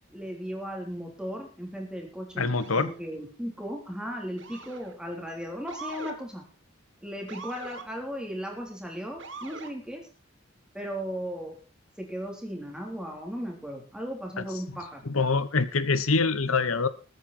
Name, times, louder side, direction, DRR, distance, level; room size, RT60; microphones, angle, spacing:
voice 1, 0.1-6.5 7.0-10.0 10.7-11.6 12.0-15.1, equal, 5° right, 1 dB, 3.4 m, -36 dB
voice 2, 2.4-2.9 14.4-14.5 15.1-16.9, left 4 dB, 85° left, 14 dB, 1.0 m, -25 dB
Motor vehicle (road) / Siren, 2.6-3.0 4.4-4.9 5.7-6.2 7.3-7.9 9.2-9.7, right 4 dB, 60° right, 1.9 m, -42 dB
20.0 x 9.3 x 4.3 m, 0.34 s
head